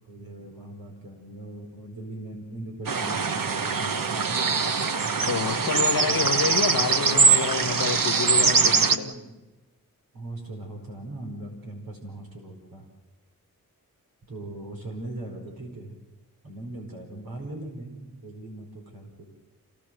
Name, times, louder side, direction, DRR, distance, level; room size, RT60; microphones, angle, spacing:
voice 1, 0.1-4.6 6.0-6.3 8.7-9.4 10.1-12.9 14.3-15.9 16.4-19.2, right 1 dB, 90° right, 1 dB, 4.9 m, -40 dB
sound 1, 2.9-9.0, right 5 dB, 70° right, 1.2 m, -22 dB
voice 2, 5.2-9.1, left 6 dB, 85° left, 10 dB, 1.5 m, -28 dB
27.0 x 17.0 x 7.8 m, 1.2 s
cardioid pair, 60°, 34 cm